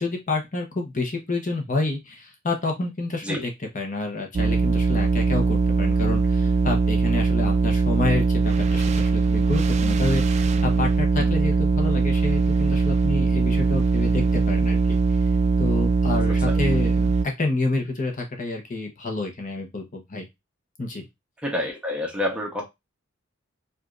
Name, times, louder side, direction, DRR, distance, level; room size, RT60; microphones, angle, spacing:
voice 1, 0.0-15.0 15.6-20.3 20.8-21.0, left 2 dB, 40° left, 0.8 m, -29 dB
sound 1, 4.3-17.2, right 4 dB, 35° right, 0.3 m, -21 dB
voice 2, 21.4-22.6, left 1 dB, 5° right, 1.0 m, -28 dB
4.9 x 2.5 x 2.4 m
head